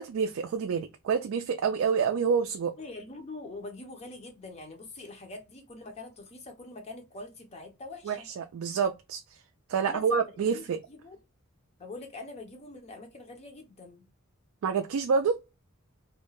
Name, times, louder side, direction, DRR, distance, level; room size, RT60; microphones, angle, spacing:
voice 1, 0.0-2.7 8.1-9.2 9.7-10.8 14.6-15.4, right 6 dB, 70° right, 0.3 m, -28 dB
voice 2, 2.8-8.3 9.8-11.2 11.8-14.1, left 2 dB, 30° left, 0.5 m, -44 dB
2.3 x 2.1 x 3.0 m
head